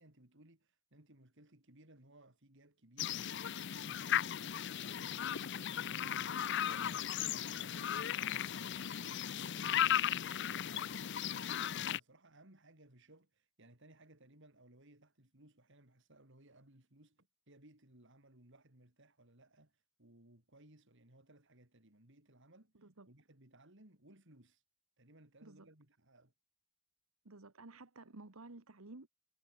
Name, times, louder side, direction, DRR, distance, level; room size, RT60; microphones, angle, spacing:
voice 1, 0.0-24.6 25.0-26.3, right 1 dB, 60° right, 4.1 m, -63 dB
sound 1, 3.0-12.0, left 10 dB, 55° left, 0.6 m, -36 dB
voice 2, 27.2-29.1, right 2 dB, 80° right, 1.6 m, -53 dB
head